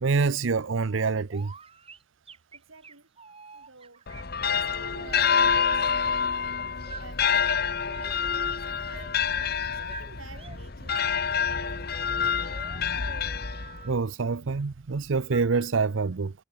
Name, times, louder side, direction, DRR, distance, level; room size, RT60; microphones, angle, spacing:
voice 1, 0.0-1.5 13.8-16.3, right 4 dB, 70° right, 0.6 m, -26 dB
sound 1, 1.3-5.9 6.9-7.1 7.3-8.6 8.9-10.6 10.9-11.1 11.3-14.0 15.3-15.6, right 4 dB, 30° right, 6.7 m, -46 dB
voice 2, 2.5-3.1 3.5-4.0 4.5-6.6 7.0-8.2 8.6-12.6, right 3 dB, 90° right, 7.6 m, -51 dB
sound 2, 4.1-14.0, left 6 dB, 50° left, 1.2 m, -27 dB
head